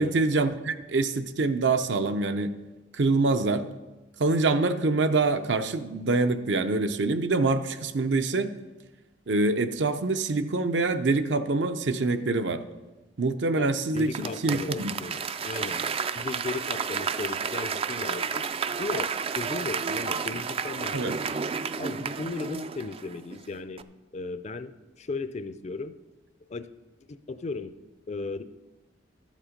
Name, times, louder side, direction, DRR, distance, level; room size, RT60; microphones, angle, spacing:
voice 1, 0.0-2.6 2.9-3.7 4.2-8.5 9.3-12.6 13.2-14.2 14.4-14.9 20.9-21.2, right 3 dB, 70° right, 9 dB, 0.7 m, -25 dB
voice 2, 13.6-15.8 16.1-18.4 18.8-19.1 19.3-21.4 21.8-23.8 24.1-24.7 25.0-25.9 26.5-26.7 27.1-27.7 28.1-28.4, left 3 dB, 35° left, 12 dB, 0.4 m, -36 dB
Applause / Crowd, 14.0-23.4 23.8-23.9, right 6 dB, 30° right, 0.3 m, -31 dB
12.5 x 7.4 x 5.1 m, 1.1 s
head